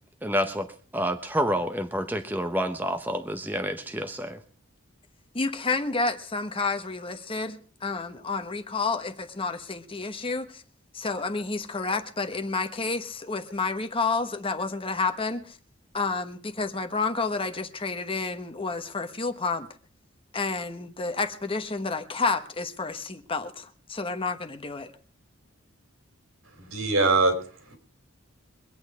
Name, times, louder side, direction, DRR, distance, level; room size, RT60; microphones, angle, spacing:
voice 1, 0.2-0.7 0.9-4.4, equal, 10° right, 0.8 m, -28 dB
voice 2, 5.3-10.6 10.9-15.6 15.9-19.7 20.3-24.9, left 4 dB, 25° left, 1.1 m, -30 dB
voice 3, 26.6-27.8, right 3 dB, 80° right, 3.5 m, -24 dB
23.5 x 8.9 x 4.8 m
head